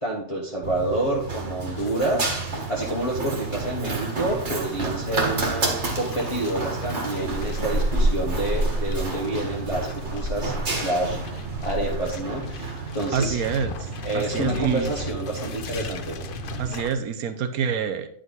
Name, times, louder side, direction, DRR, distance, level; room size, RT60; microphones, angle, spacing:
voice 1, 0.0-13.4 14.0-16.2, right 1 dB, 25° left, -4 dB, 1.2 m, -28 dB
Run, 0.6-16.7, right 2 dB, 50° right, 1.9 m, -29 dB
sound 1, 1.8-16.9, left 6 dB, 55° left, 0.6 m, -40 dB
voice 2, 13.1-14.9 16.6-18.1, right 7 dB, 75° right, 9 dB, 1.3 m, -27 dB
10.0 x 5.1 x 4.0 m, 0.65 s
omnidirectional pair, 1.6 m